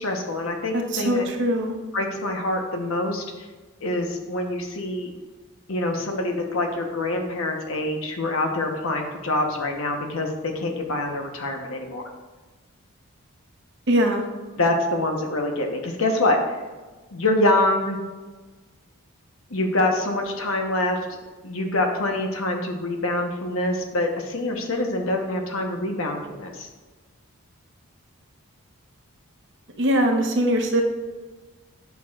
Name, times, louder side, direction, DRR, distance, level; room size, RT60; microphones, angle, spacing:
voice 1, 0.0-1.2 1.9-3.5 3.8-5.1 5.7-12.0 14.6-16.4 17.1-18.0 19.5-21.2 21.4-26.7, left 2 dB, 65° left, 3 dB, 1.1 m, -25 dB
voice 2, 0.7-1.7 13.9-14.2 29.8-30.8, equal, 55° right, 3 dB, 0.9 m, -21 dB
10.0 x 6.3 x 2.5 m, 1.3 s
head